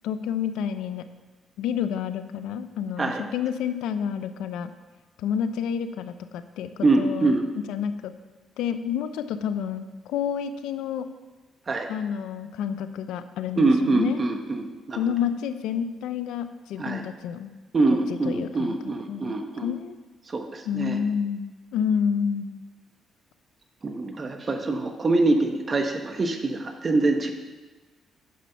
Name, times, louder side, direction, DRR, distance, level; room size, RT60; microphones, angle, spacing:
voice 1, 0.0-1.0 1.6-4.7 5.2-6.7 7.0-7.4 7.7-8.1 8.6-11.1 11.9-14.4 15.0-17.5 18.2-18.7 19.1-19.3 19.6-20.0 20.7-22.6, left 8 dB, 90° left, 11 dB, 0.5 m, -29 dB
voice 2, 6.8-7.5 11.7-11.9 13.6-15.0 16.8-17.0 17.7-19.7 20.3-21.0 23.8-27.3, right 2 dB, 35° right, 5 dB, 1.0 m, -24 dB
9.3 x 6.1 x 5.7 m, 1.3 s
cardioid pair, 90°, 0 cm